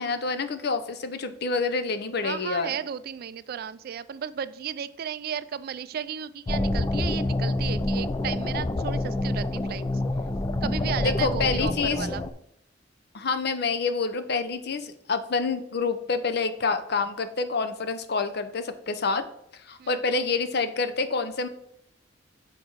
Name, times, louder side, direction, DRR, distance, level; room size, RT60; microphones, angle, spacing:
voice 1, 0.0-2.7 11.0-12.1 13.1-19.2 19.7-21.5, left 4 dB, 60° left, 10 dB, 0.7 m, -27 dB
voice 2, 2.2-9.9 10.6-12.2 19.8-20.0, right 8 dB, 55° right, 15 dB, 0.3 m, -34 dB
sound 1, 6.5-12.3, left 2 dB, 20° left, 0.4 m, -27 dB
6.6 x 4.4 x 4.6 m, 0.74 s
head